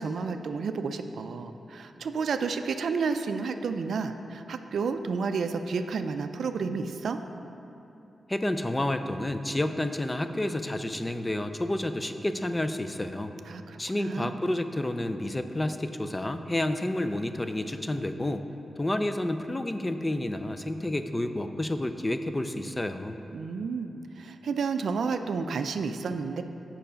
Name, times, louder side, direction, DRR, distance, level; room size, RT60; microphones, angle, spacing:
voice 1, 0.0-7.2 13.5-14.3 23.3-26.4, right 5 dB, 75° right, 8 dB, 0.3 m, -31 dB
voice 2, 8.3-13.4 13.8-18.4 18.8-23.2, left 1 dB, 15° left, 9 dB, 0.3 m, -30 dB
6.9 x 5.7 x 5.1 m, 3.0 s
wide cardioid pair, 110°, 0 cm